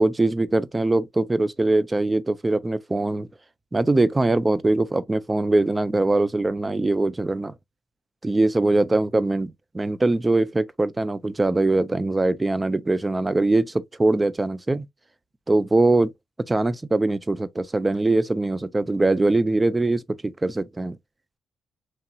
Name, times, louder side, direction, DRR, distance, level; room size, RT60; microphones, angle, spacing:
voice 1, 0.0-3.3 3.7-7.5 8.2-14.9 15.5-16.1 16.5-21.0, right 2 dB, 20° right, 0.4 m, -22 dB
3.0 x 2.8 x 2.3 m
supercardioid pair, 60°, 0 cm